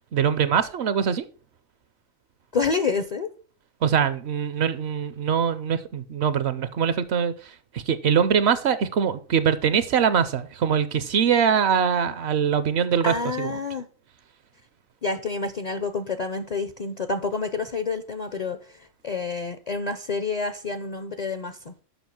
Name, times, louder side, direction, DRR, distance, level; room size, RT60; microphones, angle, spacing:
voice 1, 0.1-1.3 3.8-13.5, right 7 dB, 65° right, 0.8 m, -23 dB
voice 2, 2.5-3.3 13.0-13.9 15.0-21.8, left 4 dB, 50° left, 0.5 m, -28 dB
7.1 x 5.6 x 5.8 m
omnidirectional pair, 1.3 m